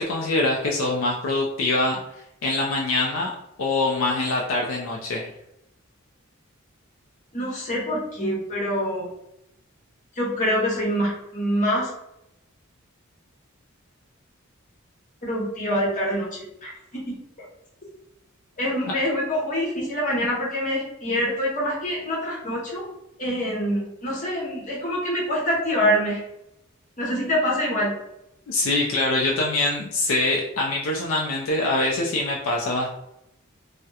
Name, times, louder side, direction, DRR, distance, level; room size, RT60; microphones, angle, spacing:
voice 1, 0.0-2.0 2.4-5.3 18.9-19.0 28.5-32.9, left 2 dB, 70° left, -1 dB, 0.4 m, -24 dB
voice 2, 7.3-9.1 10.1-11.9 15.2-17.2 18.6-22.8 23.2-26.2 27.0-27.9, equal, 40° left, -4 dB, 0.9 m, -25 dB
2.7 x 2.0 x 2.3 m, 0.83 s
head